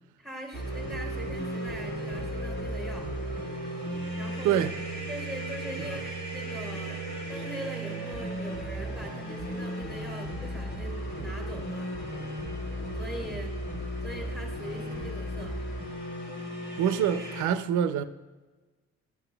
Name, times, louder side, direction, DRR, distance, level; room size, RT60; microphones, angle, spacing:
voice 1, 0.2-3.1 4.2-4.7 5.1-7.0 7.3-11.9 12.9-13.6 14.0-15.6, equal, ahead, 1.7 m, -42 dB
sound 1, 0.5-17.4, right 1 dB, 65° left, 2.1 m, -35 dB
voice 2, 16.8-18.0, right 9 dB, 75° right, 0.5 m, -26 dB
12.0 x 5.9 x 2.3 m
cardioid pair, 90°, 30 cm